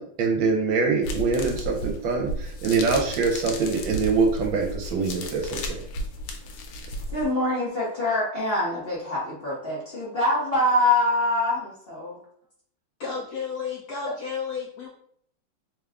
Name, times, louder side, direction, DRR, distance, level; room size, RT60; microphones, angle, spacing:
voice 1, 0.0-5.6, right 4 dB, 75° right, 2 dB, 1.4 m, -24 dB
sound 1, 1.0-7.2, equal, 90° left, 1.5 m, -34 dB
voice 2, 7.1-12.2, left 1 dB, 40° left, -7 dB, 0.9 m, -24 dB
voice 3, 13.0-14.9, left 6 dB, 75° left, -3 dB, 0.9 m, -32 dB
3.5 x 2.3 x 3.4 m, 0.64 s
omnidirectional pair, 2.2 m